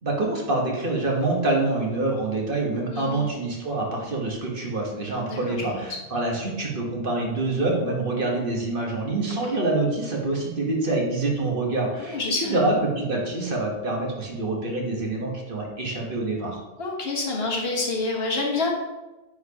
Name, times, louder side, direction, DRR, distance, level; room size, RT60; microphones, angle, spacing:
voice 1, 0.0-16.6, right 2 dB, 50° right, -1 dB, 1.4 m, -26 dB
voice 2, 2.9-3.3 5.3-6.0 9.3-9.4 12.0-12.8 16.8-18.7, left 3 dB, 60° left, -1 dB, 1.4 m, -28 dB
9.4 x 4.5 x 2.8 m, 1.1 s
omnidirectional pair, 1.1 m